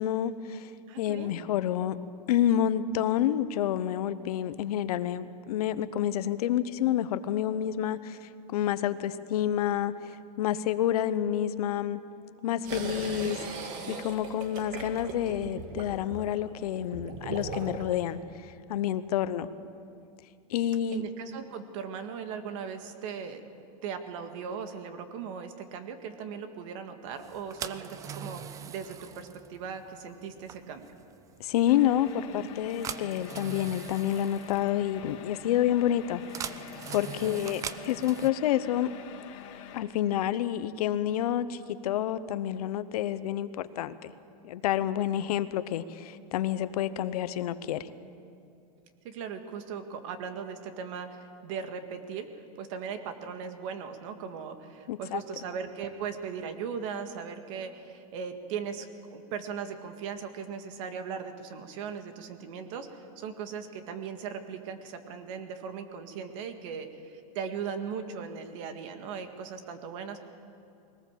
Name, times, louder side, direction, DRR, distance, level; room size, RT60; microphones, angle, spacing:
voice 1, 0.0-0.7 1.0-2.0 2.3-12.0 12.4-13.4 13.9-19.5 20.5-21.0 31.4-38.9 39.7-44.1 44.4-47.9 54.9-55.2, left 11 dB, 70° left, 13 dB, 0.9 m, -29 dB
voice 2, 0.9-1.4 19.2-19.3 20.9-23.4 23.8-30.9 37.2-37.5 49.0-52.3 52.6-70.2, right 6 dB, 55° right, 7 dB, 1.9 m, -38 dB
sound 1, 12.6-18.0, right 3 dB, 35° right, 2.1 m, -39 dB
sound 2, 27.2-38.3, right 8 dB, 15° right, 0.4 m, -43 dB
sound 3, 31.7-39.8, left 8 dB, 50° left, 2.1 m, -46 dB
21.0 x 18.5 x 7.5 m, 2.5 s
supercardioid pair, 155°, 20 cm